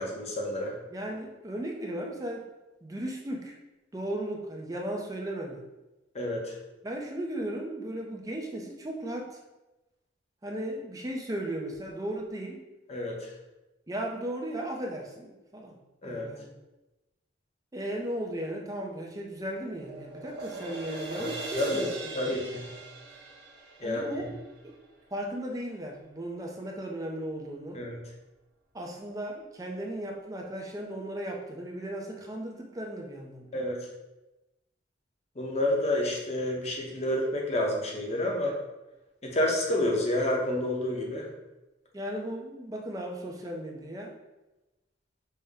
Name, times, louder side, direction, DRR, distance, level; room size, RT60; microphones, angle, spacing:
voice 1, 0.0-0.8 6.1-6.5 12.9-13.1 16.0-16.3 21.2-21.3 21.6-21.8 22.1-22.7 23.8-24.0 27.7-28.0 33.5-33.9 35.4-38.6 39.2-41.3, left 1 dB, 35° left, -1 dB, 0.7 m, -29 dB
voice 2, 0.9-2.5 2.8-3.6 3.9-5.6 6.8-9.4 10.4-12.7 13.9-15.8 16.0-16.5 17.7-22.4 23.8-24.3 24.6-24.8 25.1-27.8 28.7-33.6 41.9-44.2, right 1 dB, 20° right, 0 dB, 0.5 m, -36 dB
sound 1, 19.0-25.1, right 2 dB, 55° right, 1.0 m, -42 dB
5.4 x 2.1 x 3.5 m, 1.0 s
head